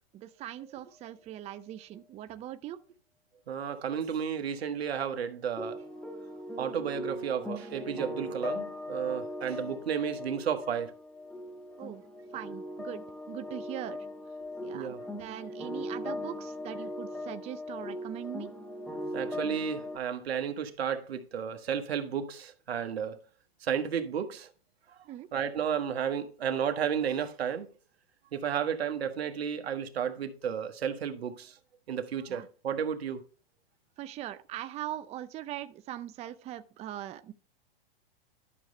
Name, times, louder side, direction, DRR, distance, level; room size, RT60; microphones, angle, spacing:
voice 1, 0.1-2.8 11.8-12.0 12.3-14.1 14.6-18.5 25.0-25.3 32.3-32.5 34.0-37.3, right 12 dB, 20° right, 0.5 m, -41 dB
voice 2, 3.5-5.8 6.6-10.9 14.7-15.0 19.1-23.2 23.6-24.5 25.3-27.7 28.3-31.6 31.9-33.2, right 8 dB, 85° right, 1.4 m, -32 dB
sound 1, 5.6-20.0, left 1 dB, 5° left, 1.3 m, -39 dB
12.0 x 6.4 x 3.3 m
hypercardioid pair, 120°, 30 cm